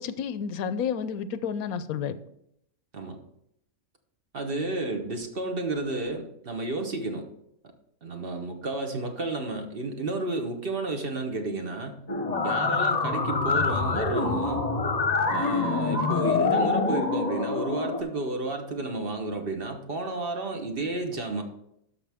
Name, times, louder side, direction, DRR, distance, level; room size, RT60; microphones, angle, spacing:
voice 1, 0.0-2.2, left 7 dB, 85° left, 13 dB, 1.1 m, -30 dB
voice 2, 4.3-7.3 8.0-12.0 12.4-14.7 15.3-21.4, right 2 dB, 45° right, 5 dB, 1.1 m, -31 dB
sound 1, 12.1-18.0, left 4 dB, 35° left, 0.9 m, -26 dB
12.5 x 5.8 x 3.5 m, 0.76 s
omnidirectional pair, 1.5 m